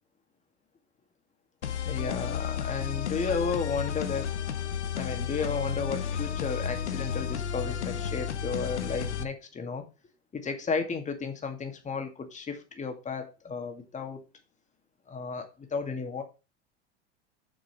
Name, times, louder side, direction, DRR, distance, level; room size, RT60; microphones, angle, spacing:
sound 1, 1.6-9.2, left 8 dB, 80° left, 1.0 m, -32 dB
voice 1, 1.9-4.3 4.9-9.8 10.3-14.2 15.1-16.2, left 5 dB, 20° left, 5 dB, 2.3 m, -33 dB
6.8 x 6.6 x 6.0 m, 0.30 s
hypercardioid pair, 90°, 34 cm